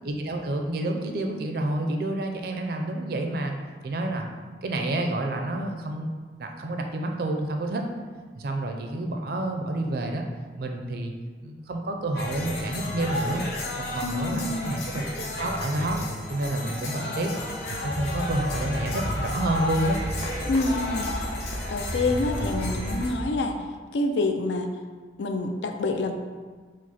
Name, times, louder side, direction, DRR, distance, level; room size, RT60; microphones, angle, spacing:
voice 1, 0.0-3.5 3.8-4.3 4.6-6.1 6.4-7.8 8.3-10.2 10.6-11.1 11.4-13.5 13.8-16.0 16.3-17.3 17.7-20.0, right 1 dB, 55° right, 3 dB, 0.4 m, -29 dB
sound 1, 12.2-23.1, left 1 dB, 60° left, 0.7 m, -33 dB
voice 2, 14.0-14.8 20.5-21.1 21.7-23.6 23.9-24.7 25.2-26.1, left 2 dB, 80° left, 5 dB, 0.4 m, -27 dB
sound 2, 17.7-23.3, equal, 30° left, 0.6 m, -34 dB
4.9 x 2.0 x 4.1 m, 1.5 s
head